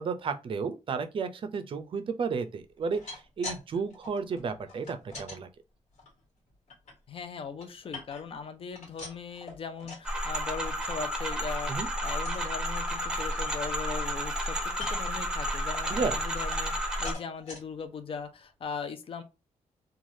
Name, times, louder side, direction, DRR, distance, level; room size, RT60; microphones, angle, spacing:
voice 1, 0.0-5.5 11.7-11.9 15.9-16.2, right 5 dB, 45° right, 0.5 m, -32 dB
sound 1, 2.8-3.6 3.9-5.4 5.9-6.9 7.4-8.4 8.7-10.1 10.4-10.7 11.0-11.1 11.5-11.7 12.1-12.5 12.9-13.0 13.3-14.1 14.7-15.2 15.7-16.8 17.0-17.6 18.2-18.3 18.6-18.7, left 3 dB, 65° left, 1.6 m, -44 dB
voice 2, 7.1-19.2, left 5 dB, 45° left, 0.5 m, -39 dB
sound 2, 10.0-17.1, equal, 5° right, 0.7 m, -31 dB
3.2 x 2.3 x 2.7 m
wide cardioid pair, 135°, 13 cm